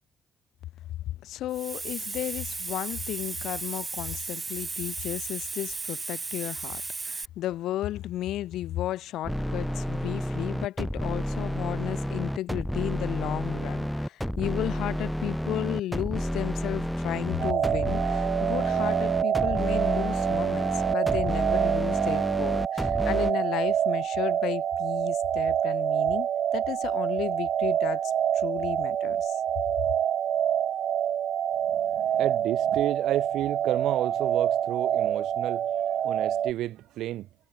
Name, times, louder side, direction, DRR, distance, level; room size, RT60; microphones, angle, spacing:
voice 1, 1.2-29.4, left 13 dB, 85° left, 3.0 m, -34 dB
Hiss, 1.5-7.3, right 3 dB, 25° right, 7.3 m, -35 dB
sound 1, 9.2-23.3, equal, ahead, 4.4 m, -30 dB
sound 2, 17.4-36.5, right 10 dB, 65° right, 1.2 m, -27 dB
voice 2, 31.7-35.7 36.0-37.3, right 14 dB, 85° right, 8.0 m, -31 dB
cardioid pair, 90°, 0 cm